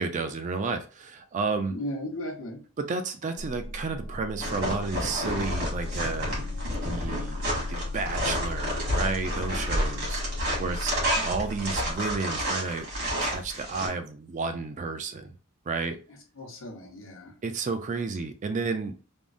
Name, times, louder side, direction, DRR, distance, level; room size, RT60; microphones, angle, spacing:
voice 1, 0.0-1.7 2.8-6.6 6.8-7.4 7.7-10.2 10.6-10.9 11.2-12.9 13.2-15.3 15.7-16.0 17.4-18.9, right 4 dB, 35° right, 0.4 m, -31 dB
voice 2, 1.7-2.6 9.8-10.2 16.1-17.4, left 1 dB, 65° left, 0.8 m, -37 dB
sound 1, 3.4-11.9, left 2 dB, 45° left, 0.4 m, -35 dB
sound 2, 4.4-13.9, equal, 70° right, 1.6 m, -30 dB
3.5 x 2.0 x 2.5 m
head